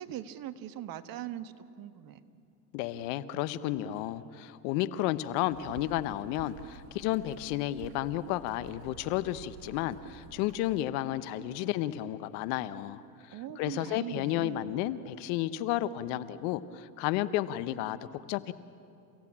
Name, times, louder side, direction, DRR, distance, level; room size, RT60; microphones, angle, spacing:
voice 1, 0.0-2.2 13.3-14.7, right 11 dB, 45° right, 11 dB, 1.4 m, -41 dB
voice 2, 2.7-13.0 13.3-18.5, left 13 dB, 65° left, 14 dB, 1.1 m, -32 dB
sound 1, 5.5-10.8, right 7 dB, 85° right, 1.6 m, -51 dB
29.5 x 17.0 x 8.7 m, 2.7 s
hypercardioid pair, 95°, 48 cm